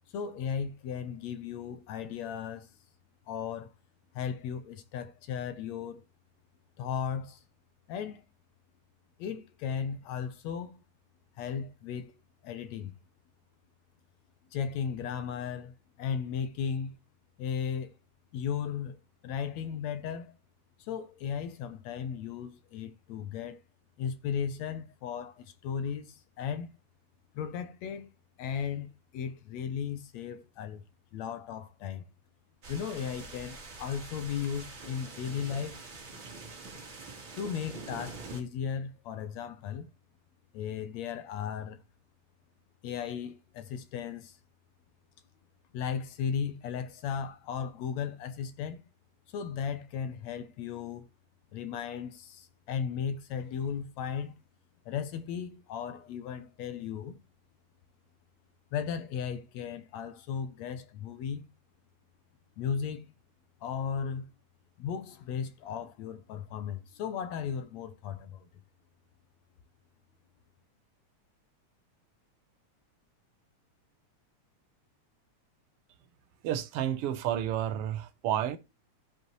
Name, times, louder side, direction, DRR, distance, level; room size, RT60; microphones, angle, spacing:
voice 1, 0.1-2.7 3.3-3.7 4.2-6.0 6.8-7.4 7.9-8.2 9.2-10.8 11.4-12.1 12.4-12.9 14.5-16.9 17.4-17.9 18.3-19.0 19.2-20.3 20.8-23.6 24.0-26.7 27.3-28.1 28.4-30.8 31.1-32.0 32.7-35.8 37.4-39.9 40.5-41.8 42.8-44.4 45.7-48.8 49.3-51.1 51.5-54.3 54.9-57.2 58.7-61.4 62.6-63.1 63.6-64.3 64.8-68.5, left 7 dB, 70° left, 1.9 m, -36 dB
sound 1, 32.6-38.4, right 3 dB, 40° right, 2.8 m, -45 dB
voice 2, 76.4-78.6, right 11 dB, 70° right, 1.5 m, -30 dB
15.5 x 5.2 x 3.1 m
omnidirectional pair, 3.5 m